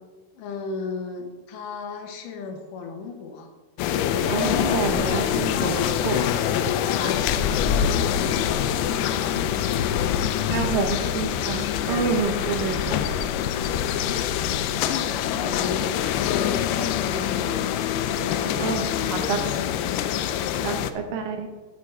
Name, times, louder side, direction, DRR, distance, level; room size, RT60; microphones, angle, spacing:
voice 1, 0.3-3.5 6.9-7.4 7.8-9.9 10.4-11.1 11.8-12.8 14.0-14.3 14.6-15.9 16.2-19.6 19.9-20.7, left 4 dB, 65° left, 3 dB, 2.4 m, -36 dB
sound 1, 3.8-20.9, left 9 dB, 85° left, 2.4 m, -25 dB
voice 2, 4.3-6.6 7.0-7.2 10.5-13.0 18.6-19.4 20.6-21.5, right 5 dB, 70° right, 4 dB, 2.3 m, -28 dB
12.0 x 6.0 x 4.6 m, 1.2 s
omnidirectional pair, 4.6 m